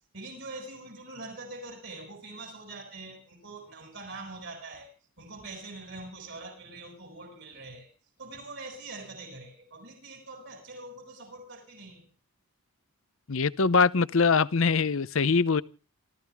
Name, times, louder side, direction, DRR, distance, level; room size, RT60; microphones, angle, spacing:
voice 1, 0.1-7.9 8.2-12.1, right 2 dB, 55° right, 6.9 m, -44 dB
voice 2, 13.3-15.6, left 4 dB, 65° left, 0.7 m, -23 dB
27.5 x 14.0 x 3.5 m
head